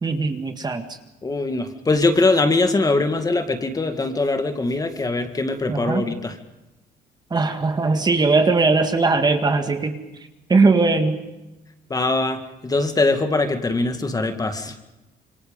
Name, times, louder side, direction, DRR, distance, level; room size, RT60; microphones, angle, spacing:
voice 1, 0.0-0.8 5.7-6.0 7.3-10.0 10.5-11.2, right 3 dB, 25° right, 6 dB, 1.9 m, -19 dB
voice 2, 1.2-6.3 11.9-14.7, left 3 dB, 20° left, 7 dB, 2.1 m, -22 dB
27.0 x 23.5 x 5.4 m, 1.0 s
cardioid pair, 110°, 17 cm